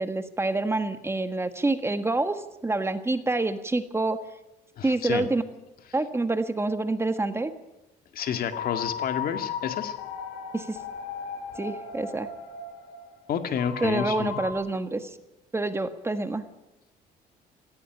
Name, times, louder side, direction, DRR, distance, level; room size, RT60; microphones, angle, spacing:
voice 1, 0.0-4.3 4.8-5.4 5.9-7.5 10.5-10.8 11.6-12.3 13.8-15.2 15.5-16.4, right 2 dB, 15° right, 9 dB, 1.6 m, -27 dB
voice 2, 4.8-5.3 8.1-9.9 13.3-14.4, left 8 dB, 60° left, 8 dB, 2.1 m, -30 dB
sound 1, 8.3-14.5, left 7 dB, 85° left, 3.5 m, -36 dB
17.5 x 16.0 x 9.9 m, 0.91 s
cardioid pair, 110°, 17 cm